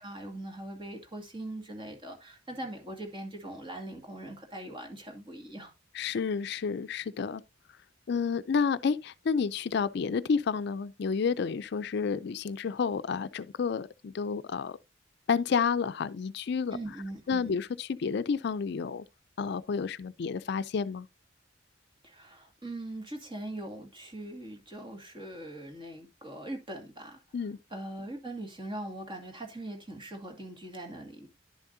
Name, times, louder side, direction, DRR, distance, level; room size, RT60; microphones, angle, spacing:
voice 1, 0.0-5.7 16.7-17.6 22.0-27.2 27.7-31.3, right 1 dB, 25° right, 2.2 m, -41 dB
voice 2, 5.9-7.4 8.1-14.8 15.3-16.8 17.3-19.0 19.4-21.1 27.3-27.6, left 5 dB, 60° left, 0.4 m, -30 dB
10.5 x 7.2 x 2.6 m
head